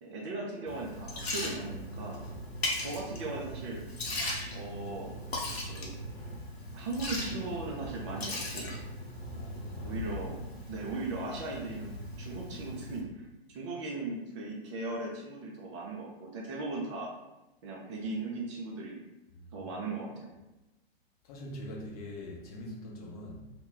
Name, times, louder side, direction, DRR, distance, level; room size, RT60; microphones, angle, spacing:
voice 1, 0.0-2.2 2.8-3.8 4.5-5.1 5.7-6.0 6.7-8.7 9.8-13.3 13.5-17.1 17.6-19.0 19.5-20.3, right 2 dB, 30° right, -2 dB, 0.4 m, -38 dB
Liquid, 0.7-13.0, left 1 dB, 75° left, 0.7 m, -38 dB
voice 2, 9.2-10.4 19.3-19.7 21.2-23.5, left 1 dB, 40° left, -2 dB, 0.7 m, -44 dB
2.2 x 2.1 x 3.7 m, 1.0 s
figure-of-eight pair, 110°, 31 cm